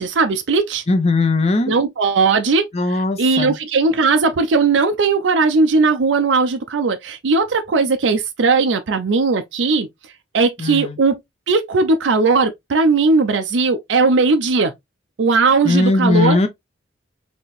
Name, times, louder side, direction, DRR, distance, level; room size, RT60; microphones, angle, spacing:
voice 1, 0.0-0.8 1.7-9.9 10.3-11.2 11.5-14.7 15.2-16.4, right 4 dB, 90° right, 0.5 m, -18 dB
voice 2, 0.9-1.7 2.7-3.6 10.6-11.0 15.6-16.5, left 2 dB, 35° left, 0.7 m, -18 dB
4.1 x 2.9 x 3.0 m
head